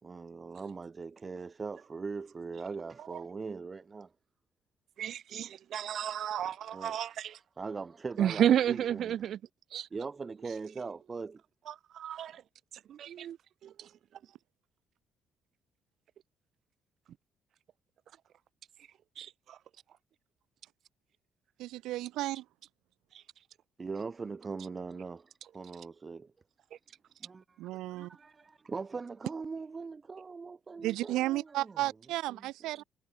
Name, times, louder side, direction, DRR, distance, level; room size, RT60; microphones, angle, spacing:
voice 1, 0.0-4.1 6.7-7.1 7.6-9.2 9.9-11.4 23.8-26.3 27.2-27.6 27.9-31.9 32.3-32.8, right 4 dB, 30° right, 4.5 m, -41 dB
voice 2, 5.0-7.4 8.2-9.4 9.7-9.9 11.7-12.3 12.9-13.4 13.6-13.9 19.2-19.6 23.1-23.2, right 10 dB, 65° right, 1.6 m, -32 dB
voice 3, 21.6-22.4 27.6-28.1 30.8-32.8, right 17 dB, 90° right, 1.7 m, -33 dB
cardioid pair, 95°, 0 cm